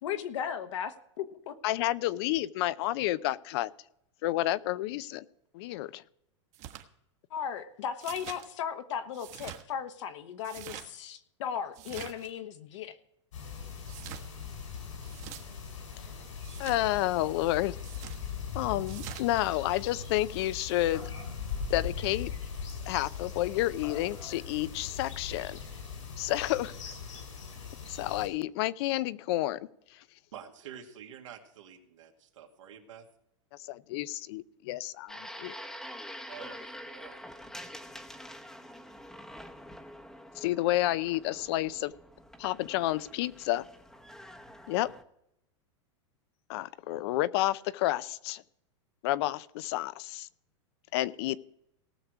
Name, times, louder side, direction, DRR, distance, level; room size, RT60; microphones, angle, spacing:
voice 1, 0.0-1.6 7.3-13.0, left 8 dB, 75° left, 8 dB, 1.3 m, -36 dB
voice 2, 1.6-3.7 4.2-5.2 5.5-6.0 16.0-16.1 16.6-17.8 18.5-21.1 21.7-22.3 22.9-25.6 26.2-26.7 27.9-29.6 33.6-35.5 40.4-41.9 42.4-43.6 44.7-44.9 46.5-48.4 49.0-50.3 50.9-51.4, left 16 dB, 55° left, 17 dB, 0.6 m, -30 dB
sound 1, 6.5-6.8 8.0-8.4 9.1-9.6 10.4-10.9 11.7-12.3 13.8-14.3 15.0-15.4 16.4-16.8 17.8-18.2 18.9-19.3, right 12 dB, 45° right, 1.4 m, -44 dB
sound 2, 13.3-28.3, left 6 dB, 90° left, 4.9 m, -40 dB
voice 3, 30.3-33.1 36.3-37.3, right 9 dB, 80° right, 2 dB, 2.3 m, -48 dB
sound 3, 35.1-45.0, equal, 5° left, 0.9 m, -46 dB
18.5 x 6.6 x 4.7 m, 0.78 s
supercardioid pair, 130°, 16 cm